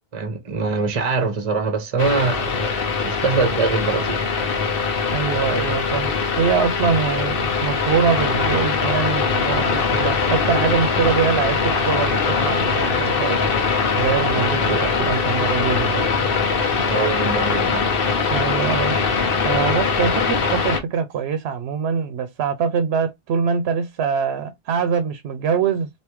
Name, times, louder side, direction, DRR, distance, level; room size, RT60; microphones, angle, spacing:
voice 1, 0.1-4.2 14.4-15.1 16.9-17.9, right 4 dB, 35° right, 0.8 m, -24 dB
sound 1, 2.0-20.8, left 5 dB, 65° left, 1.0 m, -21 dB
voice 2, 5.1-6.1 6.4-13.5 13.9-16.1 18.3-19.0 19.4-25.9, right 6 dB, 85° right, 0.8 m, -23 dB
3.4 x 2.7 x 3.0 m
omnidirectional pair, 1.0 m